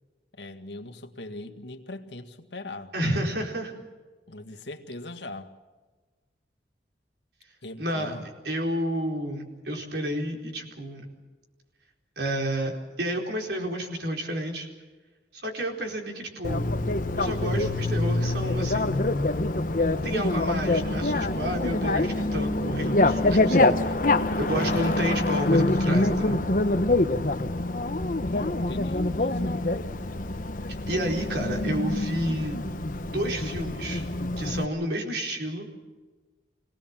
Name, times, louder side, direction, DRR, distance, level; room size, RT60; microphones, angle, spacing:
voice 1, 0.3-2.9 4.3-5.5 7.6-8.3 28.3-29.6, left 2 dB, 75° left, 1.9 m, -41 dB
voice 2, 2.9-3.7 7.8-11.1 12.2-12.7 13.0-14.7 15.3-16.7 17.2-19.0 20.0-26.4 30.9-32.6 33.0-34.1 34.4-35.7, equal, 65° right, 4.4 m, -30 dB
Bicycle, 16.4-34.6, left 2 dB, 45° left, 1.1 m, -25 dB
25.5 x 19.0 x 7.4 m
head